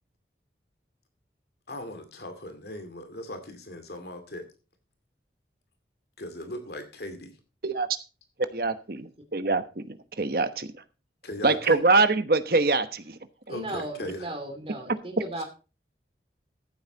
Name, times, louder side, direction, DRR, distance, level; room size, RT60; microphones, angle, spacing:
voice 1, 1.7-4.4 6.2-7.3 11.2-11.8 13.5-14.2 15.4-15.5, left 1 dB, 65° left, 2.3 m, -38 dB
voice 2, 8.5-9.8 10.2-10.7 11.4-13.2, right 3 dB, 55° right, 1.1 m, -24 dB
voice 3, 13.5-15.4, right 1 dB, 30° right, 2.9 m, -36 dB
14.5 x 8.0 x 4.0 m
head